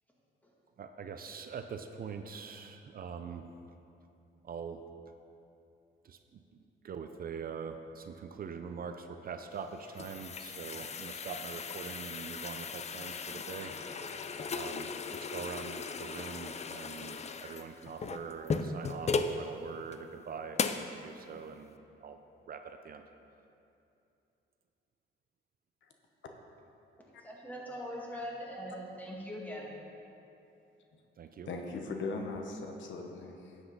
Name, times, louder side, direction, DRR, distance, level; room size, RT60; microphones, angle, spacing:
voice 1, 0.8-3.4 4.4-4.8 6.0-6.2 6.8-14.9 15.3-22.2 22.5-23.0 31.2-31.5, right 6 dB, 50° right, 7 dB, 0.6 m, -43 dB
sound 1, 9.6-19.4 19.9-20.0 20.6-20.9, left 5 dB, 35° left, 0.5 m, -37 dB
voice 2, 27.2-29.7, equal, 10° left, -4 dB, 2.3 m, -41 dB
voice 3, 31.5-33.6, left 3 dB, 70° left, 3 dB, 1.0 m, -39 dB
11.0 x 8.0 x 4.1 m, 2.8 s
cardioid pair, 90°, 20 cm